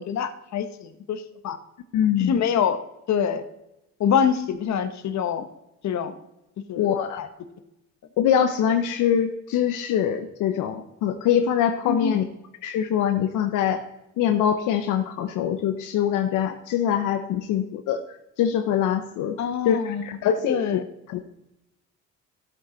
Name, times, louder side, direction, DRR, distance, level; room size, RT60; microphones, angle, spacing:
voice 1, 0.0-1.6 2.2-2.8 3.1-3.4 4.0-5.5 5.8-6.1 6.7-7.3 11.9-12.2 19.4-20.1 20.5-20.9, left 7 dB, 65° left, 9 dB, 1.1 m, -25 dB
voice 2, 1.9-2.3 6.8-7.2 8.2-12.2 12.6-13.8 14.2-18.0 18.4-19.4 19.6-20.8 21.1-21.2, left 9 dB, 90° left, 7 dB, 0.8 m, -23 dB
14.0 x 8.5 x 3.9 m, 0.89 s
cardioid pair, 90°, 30 cm